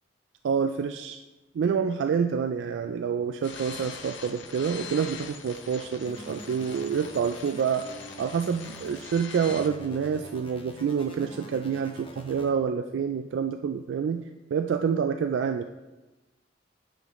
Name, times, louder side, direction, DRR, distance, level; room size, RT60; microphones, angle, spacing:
voice 1, 0.4-1.2 1.5-7.8 8.2-14.2 14.5-15.6, right 6 dB, 80° right, 7 dB, 0.3 m, -27 dB
sound 1, 3.4-9.7, left 5 dB, 90° left, 0.7 m, -43 dB
sound 2, 6.1-9.1 9.5-12.5, equal, 30° left, 0.9 m, -45 dB
9.1 x 5.6 x 3.0 m, 1.1 s
head